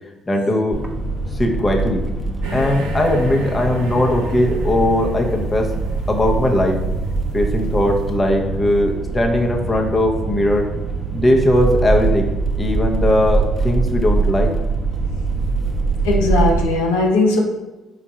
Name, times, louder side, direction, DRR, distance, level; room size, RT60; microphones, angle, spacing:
voice 1, 0.3-0.8 1.3-2.1 2.5-5.7 6.1-6.8 7.3-10.7 11.1-12.3 12.6-14.5, left 1 dB, 25° left, 1 dB, 0.8 m, -19 dB
sound 1, 0.7-16.6, right 3 dB, 5° right, 0.7 m, -23 dB
sound 2, 2.4-8.0, right 2 dB, 80° right, 0.5 m, -34 dB
voice 2, 16.0-17.4, left 2 dB, 85° left, -1 dB, 0.6 m, -18 dB
4.5 x 2.5 x 4.2 m, 1.1 s
hypercardioid pair, 55°, 0 cm